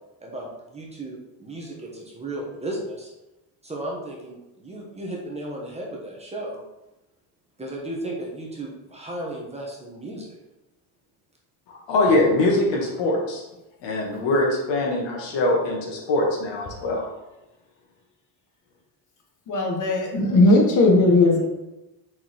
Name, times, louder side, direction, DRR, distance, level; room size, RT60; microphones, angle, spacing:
voice 1, 0.2-3.1 3.6-6.6 7.6-10.3, right 1 dB, 15° right, -2 dB, 1.3 m, -34 dB
voice 2, 11.7-13.4 13.8-17.1, left 2 dB, 70° left, -1 dB, 2.2 m, -22 dB
voice 3, 19.5-21.5, left 2 dB, 40° left, 1 dB, 1.7 m, -17 dB
6.4 x 4.7 x 4.7 m, 0.97 s
cardioid pair, 150°, 44 cm